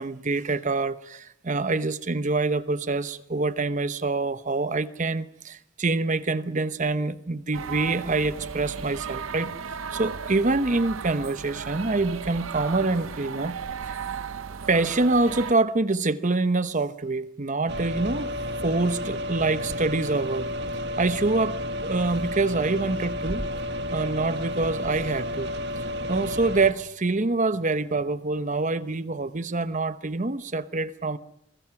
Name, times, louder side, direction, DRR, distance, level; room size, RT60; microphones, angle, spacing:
voice 1, 0.0-9.5 9.9-13.6 13.9-14.0 14.7-18.3 18.6-20.5 21.0-23.4 23.9-31.2, right 3 dB, 40° right, 0.9 m, -26 dB
sound 1, 7.5-15.5, right 6 dB, 80° right, 0.8 m, -35 dB
sound 2, 17.7-26.7, equal, 55° right, 1.7 m, -31 dB
23.5 x 23.5 x 6.0 m
head